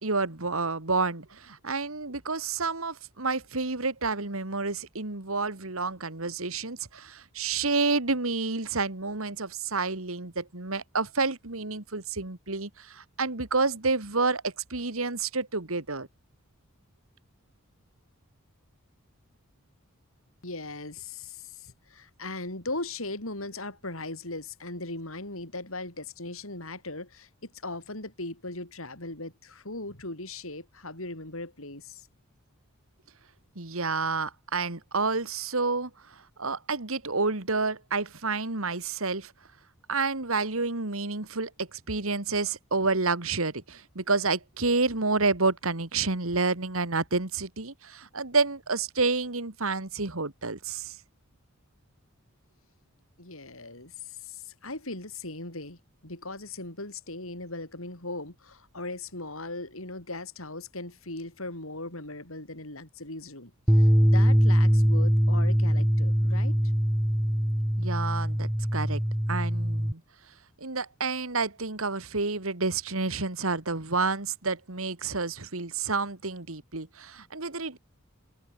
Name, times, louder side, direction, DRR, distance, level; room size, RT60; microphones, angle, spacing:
voice 1, 0.0-16.1 33.6-39.3 39.9-51.0 67.8-69.0 69.3-70.0 70.6-77.8, right 3 dB, 70° right, 2.3 m, -29 dB
voice 2, 20.4-32.1 53.2-66.6, left 2 dB, 70° left, 6.9 m, -38 dB
sound 1, 63.7-69.9, equal, 5° right, 1.0 m, -23 dB
head